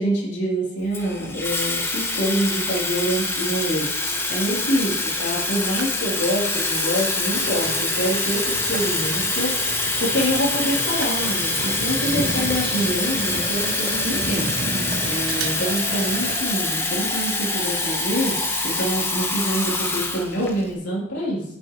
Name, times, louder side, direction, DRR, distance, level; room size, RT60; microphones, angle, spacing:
voice 1, 0.0-3.9 4.3-4.9 5.2-9.5 10.0-14.5 15.0-18.3 18.6-21.4, equal, 65° left, -5 dB, 3.3 m, -26 dB
Water tap faucet / Fill (with liquid), 0.9-20.7, left 2 dB, 10° left, 0.9 m, -25 dB
sound 1, 3.1-3.7 3.9-7.8 8.4-8.5 8.7-12.3 12.6-12.7 12.9-13.0 13.6-13.7 13.9-14.8 15.2-15.8 16.1-16.2 17.1-17.4 17.8-17.9 18.3-18.4 18.8-18.9, right 5 dB, 70° right, 1.1 m, -40 dB
sound 2, 7.3-16.4, right 3 dB, 40° right, 0.6 m, -33 dB
9.1 x 8.4 x 3.1 m, 0.73 s
head